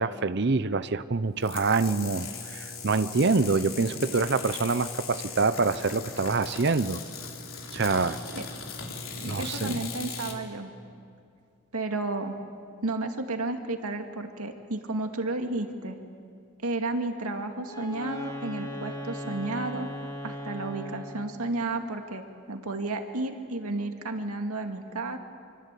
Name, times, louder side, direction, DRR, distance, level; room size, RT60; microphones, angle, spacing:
voice 1, 0.0-7.0 7.7-8.2 9.2-9.8, right 4 dB, 50° right, 13 dB, 0.7 m, -26 dB
sound 1, 1.4-10.4, left 5 dB, 70° left, 3.5 m, -38 dB
voice 2, 9.4-10.7 11.7-12.4 12.8-16.0 16.6-19.9 20.2-25.2, right 2 dB, 90° right, 5 dB, 2.2 m, -32 dB
Wind instrument woodwind instrument, 17.6-21.3, left 1 dB, 15° left, 2.9 m, -38 dB
25.5 x 24.5 x 8.4 m, 2.3 s
head